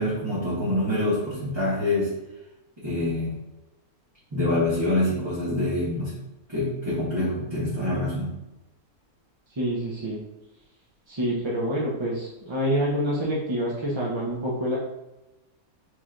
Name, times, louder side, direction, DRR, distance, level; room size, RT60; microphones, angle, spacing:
voice 1, 0.0-2.1 2.8-3.4 4.3-6.2 6.5-8.3, left 1 dB, 20° right, -10 dB, 1.3 m, -26 dB
voice 2, 9.6-10.2 11.1-14.8, equal, 35° right, -4 dB, 0.4 m, -27 dB
6.4 x 3.2 x 2.5 m, 0.98 s
omnidirectional pair, 1.5 m